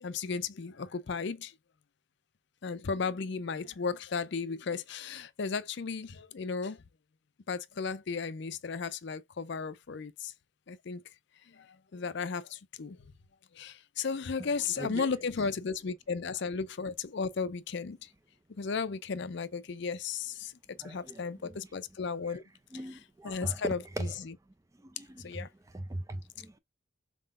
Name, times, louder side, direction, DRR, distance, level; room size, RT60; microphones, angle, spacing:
voice 1, 0.0-1.5 2.6-6.1 6.3-6.8 7.5-10.1 10.7-11.0 11.9-12.4 12.8-13.0 13.6-18.0 18.6-20.3 20.8-22.4 23.2-24.3 25.2-25.5, left 5 dB, 55° left, 0.5 m, -34 dB
voice 2, 14.8-15.1 20.8-21.6 22.3-22.4 22.7-24.1 24.8-25.5 25.7-26.6, right 1 dB, 15° right, 0.4 m, -39 dB
4.5 x 3.8 x 2.4 m
head